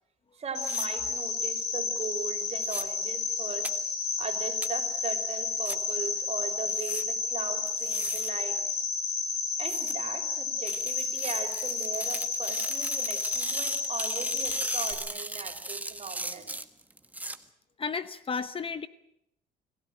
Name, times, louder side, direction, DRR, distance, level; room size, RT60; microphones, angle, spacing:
voice 1, 0.4-3.7 4.2-8.6 9.6-16.5, right 5 dB, 40° right, 5 dB, 4.7 m, -39 dB
Cricket, 0.5-14.9, left 5 dB, 70° left, 7.9 m, -31 dB
sound 1, 0.6-0.9 2.6-2.8 3.6-3.7 4.6-4.7 5.6-5.8 6.7-7.0 7.7-8.3 9.6-9.9 10.7-17.4, right 2 dB, 10° right, 1.6 m, -37 dB
voice 2, 17.8-18.9, left 5 dB, 30° left, 13 dB, 1.0 m, -33 dB
26.5 x 17.0 x 9.1 m, 0.77 s
cardioid pair, 110°, 17 cm